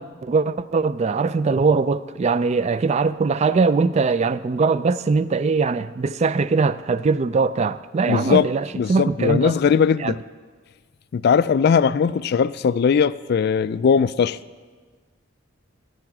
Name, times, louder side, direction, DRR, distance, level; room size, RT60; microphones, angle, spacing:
voice 1, 0.0-9.5 10.0-10.1, right 4 dB, 30° right, 0.3 m, -21 dB
voice 2, 8.1-8.5 8.8-10.2 11.1-14.4, left 6 dB, 50° left, 0.3 m, -19 dB
14.0 x 9.7 x 6.0 m
head